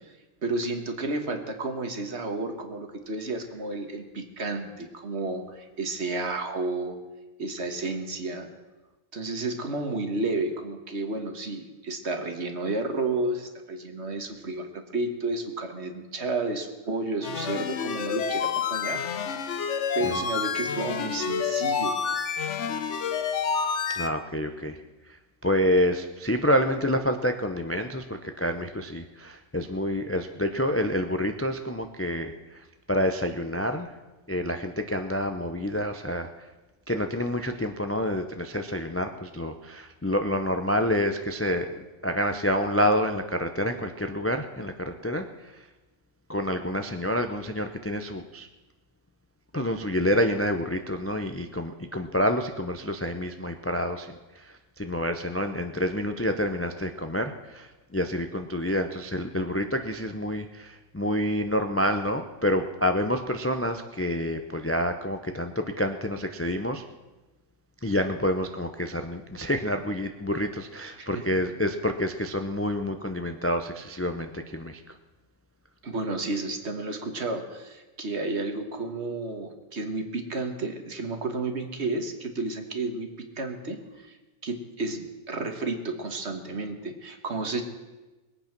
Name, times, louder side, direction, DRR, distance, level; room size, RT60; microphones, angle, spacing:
voice 1, 0.4-7.0 7.4-8.5 9.1-19.0 19.9-22.0 71.0-71.2 75.8-84.2 84.4-87.6, right 2 dB, 50° right, 5 dB, 1.7 m, -31 dB
sound 1, 17.2-24.1, left 6 dB, 60° left, 1.1 m, -29 dB
voice 2, 23.9-24.8 25.4-33.9 34.3-36.3 36.9-45.6 46.3-48.5 49.5-66.8 67.8-74.8, left 1 dB, 20° left, 7 dB, 0.3 m, -28 dB
21.5 x 8.6 x 6.0 m, 1.1 s
omnidirectional pair, 1.5 m